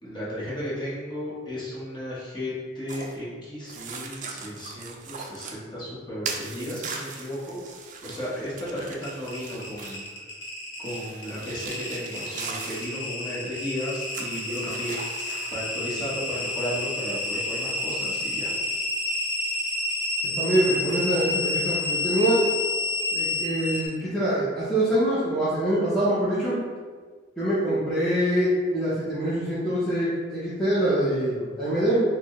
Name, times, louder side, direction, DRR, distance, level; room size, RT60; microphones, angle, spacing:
voice 1, 0.0-7.6 8.0-10.0 10.8-14.9 15.5-18.5, equal, 25° left, -8 dB, 1.0 m, -34 dB
sound 1, 2.9-3.2 3.7-5.6 6.2-10.1 10.9-12.9 13.9-15.6, right 5 dB, 40° right, 0.3 m, -39 dB
Geiger Counter Radioactive, 9.0-23.9, left 2 dB, 80° left, 1.1 m, -29 dB
voice 2, 20.4-22.4 23.1-26.6 27.4-32.0, right 1 dB, 5° left, -12 dB, 0.6 m, -24 dB
4.1 x 2.1 x 3.0 m, 1.5 s
head